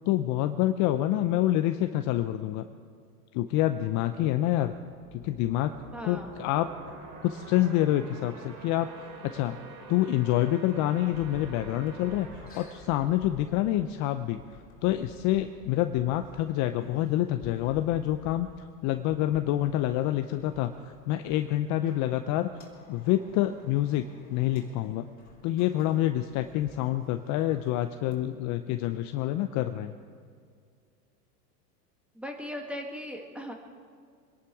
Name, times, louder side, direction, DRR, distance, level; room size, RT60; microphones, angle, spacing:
voice 1, 0.0-2.6 3.3-4.8 5.1-5.7 6.0-6.7 7.2-9.6 9.9-14.4 14.8-22.5 22.9-25.1 25.4-29.9, left 13 dB, 40° left, 9 dB, 0.7 m, -27 dB
sound 1, 4.8-14.1, right 3 dB, 40° right, 3.0 m, -47 dB
voice 2, 5.9-6.3 32.2-33.5, equal, ahead, 2 dB, 2.0 m, -38 dB
sound 2, 11.0-28.3, left 4 dB, 20° left, 3.8 m, -53 dB
24.5 x 11.0 x 4.8 m, 2.1 s
hypercardioid pair, 115°, 48 cm